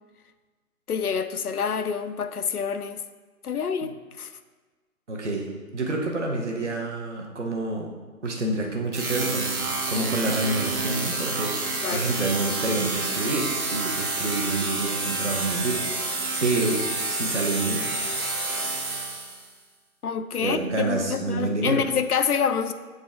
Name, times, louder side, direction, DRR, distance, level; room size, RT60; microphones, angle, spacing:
voice 1, 0.9-3.0 3.4-4.3 11.8-12.1 20.0-22.7, left 7 dB, 80° left, 11 dB, 0.6 m, -27 dB
voice 2, 5.1-5.4 5.7-7.9 8.2-9.6 9.9-15.8 16.4-16.8 17.1-17.8 20.4-21.8, right 2 dB, 50° right, 1 dB, 1.1 m, -28 dB
sound 1, 8.9-19.5, right 3 dB, 75° right, 1.2 m, -29 dB
7.7 x 4.0 x 3.6 m, 1.3 s
figure-of-eight pair, 150°, 44 cm